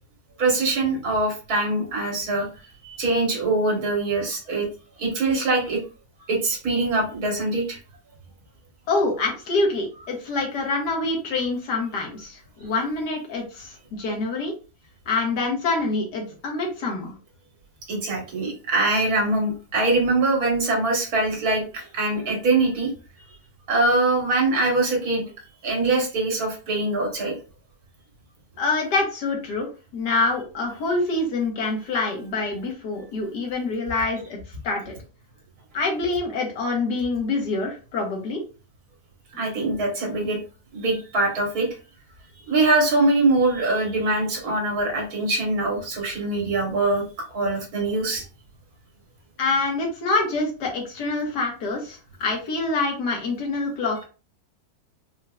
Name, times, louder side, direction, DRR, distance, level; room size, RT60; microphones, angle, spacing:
voice 1, 0.4-2.5 2.8-4.7 5.0-5.8 6.3-7.8 17.9-22.9 23.7-25.2 25.6-27.4 39.4-40.4 40.7-41.7 42.5-47.1 47.3-48.2, right 2 dB, 60° right, -1 dB, 1.8 m, -23 dB
voice 2, 8.9-14.5 15.1-17.1 28.6-29.7 29.9-34.4 34.6-34.9 35.7-38.4 49.4-54.0, left 3 dB, 70° left, 0 dB, 1.8 m, -26 dB
4.4 x 2.6 x 2.3 m, 0.34 s
omnidirectional pair, 1.9 m